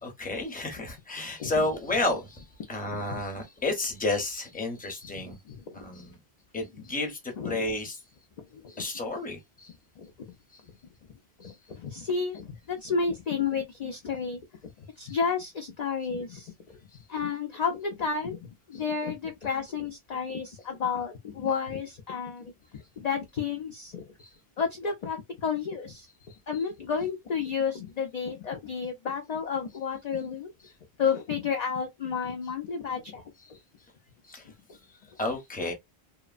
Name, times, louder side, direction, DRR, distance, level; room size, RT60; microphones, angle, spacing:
voice 1, 0.0-5.4 5.7-6.2 6.5-8.0 8.7-9.7 10.5-10.6 11.4-11.6 15.1-15.2 18.7-18.8 24.2-24.3 26.5-26.6 34.2-34.5 35.2-35.7, left 2 dB, 10° left, 0.6 m, -32 dB
voice 2, 2.9-3.2 5.5-5.8 7.4-7.6 8.5-8.6 10.0-10.1 11.4-14.4 14.8-16.5 17.1-24.0 24.6-26.1 26.5-30.5 31.0-33.2, left 6 dB, 55° left, 0.5 m, -31 dB
2.8 x 2.0 x 2.4 m
omnidirectional pair, 1.0 m